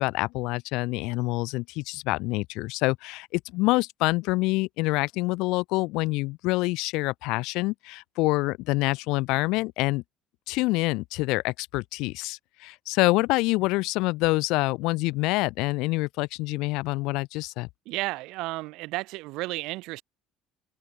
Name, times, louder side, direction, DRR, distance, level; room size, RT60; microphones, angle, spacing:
voice 1, 0.0-10.0 10.5-17.7, left 22 dB, 80° left, 0.4 m, -26 dB
voice 2, 17.9-20.0, right 21 dB, 75° right, 0.4 m, -32 dB
cardioid pair, 130°, 0 cm